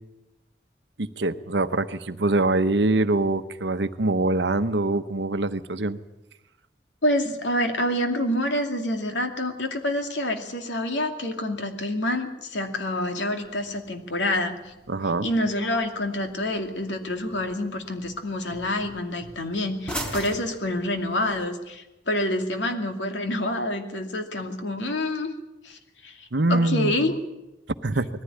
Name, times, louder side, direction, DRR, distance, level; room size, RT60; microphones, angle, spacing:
voice 1, 1.0-6.0 14.9-15.3 26.3-27.2 27.8-28.1, right 2 dB, 75° right, 11 dB, 1.0 m, -24 dB
voice 2, 7.0-14.7 15.2-25.3 25.6-27.2, left 1 dB, 90° left, 5 dB, 2.5 m, -27 dB
sound 1, 13.4-21.4, equal, 5° left, 3.6 m, -42 dB
20.0 x 15.0 x 9.9 m, 0.98 s
head